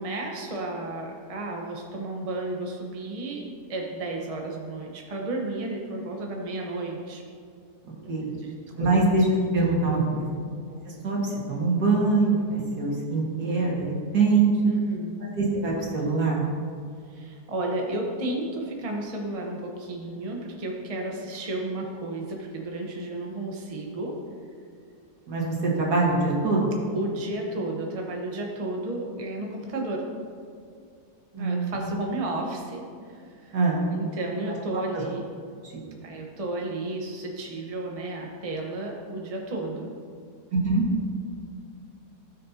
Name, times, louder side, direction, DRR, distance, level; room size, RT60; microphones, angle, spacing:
voice 1, 0.0-7.2 8.0-8.5 8.8-9.0 10.1-10.5 14.6-15.3 17.1-24.1 26.9-30.1 31.3-33.6 33.9-35.3 36.0-39.9, right 2 dB, 25° right, 0 dB, 1.0 m, -33 dB
voice 2, 8.8-9.3 9.5-10.2 11.0-14.5 15.4-16.4 25.3-26.6 31.4-31.7 33.5-33.8 40.5-40.9, right 3 dB, 75° right, -4 dB, 2.4 m, -23 dB
16.5 x 6.5 x 2.8 m, 2.2 s
omnidirectional pair, 1.7 m